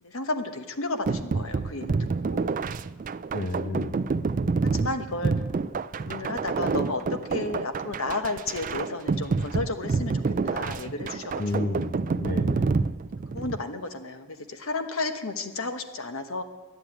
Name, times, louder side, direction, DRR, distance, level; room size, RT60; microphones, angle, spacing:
voice 1, 0.0-1.9 2.2-2.7 4.7-5.3 6.0-11.9 13.3-16.4, left 2 dB, 70° left, 7 dB, 1.2 m, -33 dB
sound 1, 1.1-13.6, right 4 dB, 40° right, 0.3 m, -28 dB
voice 2, 3.3-4.0 11.4-12.8, left 2 dB, 45° left, 6 dB, 0.8 m, -31 dB
12.0 x 9.2 x 9.2 m, 1.3 s
head